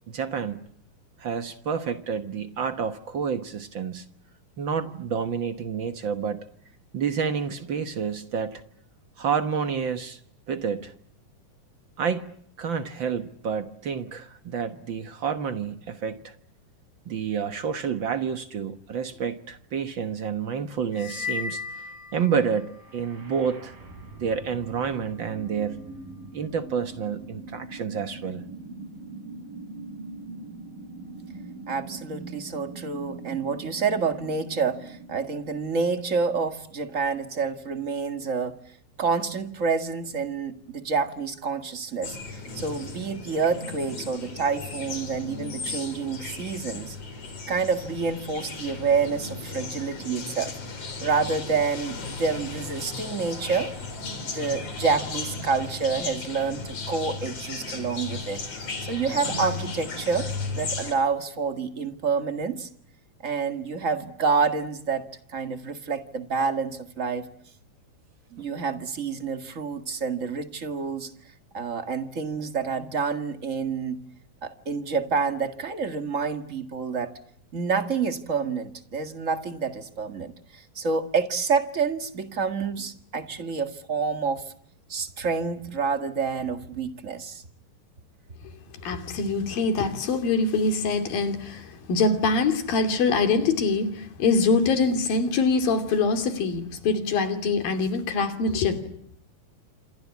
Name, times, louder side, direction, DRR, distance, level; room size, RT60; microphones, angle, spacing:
voice 1, 0.1-0.7 1.2-4.0 4.6-6.5 6.9-8.6 9.2-10.2 10.5-10.9 12.0-12.3 12.6-16.3 17.1-21.8 22.1-23.7 24.2-25.9 26.3-28.4, right 6 dB, 60° right, 1.2 m, -29 dB
sound 1, 20.9-22.8, left 5 dB, 65° left, 6.4 m, -35 dB
sound 2, 22.7-36.6, right 2 dB, 90° right, 6.7 m, -42 dB
voice 2, 31.7-38.5 39.0-47.0 47.5-50.5 51.0-53.7 54.3-60.3 60.5-62.7 63.2-65.0 65.3-67.3 68.3-71.1 71.5-74.0 74.4-77.1 77.5-84.4 84.9-87.4, right 5 dB, 35° right, 1.4 m, -28 dB
sound 3, 42.0-60.9, left 3 dB, 45° left, 4.7 m, -35 dB
voice 3, 88.8-98.8, left 4 dB, 85° left, 4.6 m, -24 dB
28.0 x 21.5 x 8.4 m
omnidirectional pair, 3.9 m